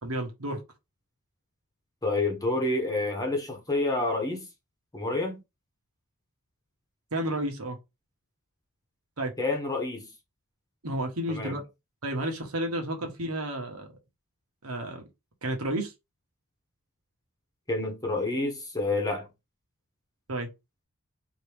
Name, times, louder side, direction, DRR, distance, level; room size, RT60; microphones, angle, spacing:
voice 1, 0.0-0.6 7.1-7.8 9.2-9.3 10.8-11.6 12.0-13.9 14.6-15.0 15.4-15.9 20.3-20.5, right 1 dB, 75° right, 1.3 m, -31 dB
voice 2, 2.0-4.4 4.9-5.4 9.4-10.1 11.3-11.5 17.7-19.3, left 2 dB, 15° left, 1.2 m, -28 dB
4.5 x 3.0 x 3.4 m
head